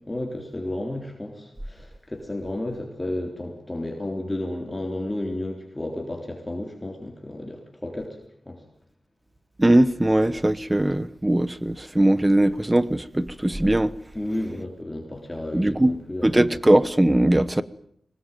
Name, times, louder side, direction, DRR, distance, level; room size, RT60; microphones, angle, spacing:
voice 1, 0.1-8.2 8.5-8.6 14.1-16.6, left 1 dB, 15° left, 3.6 m, -32 dB
voice 2, 9.6-13.9 15.5-15.9 16.2-17.6, right 1 dB, 15° right, 1.0 m, -20 dB
24.5 x 20.5 x 9.3 m
wide cardioid pair, 135°, 0 cm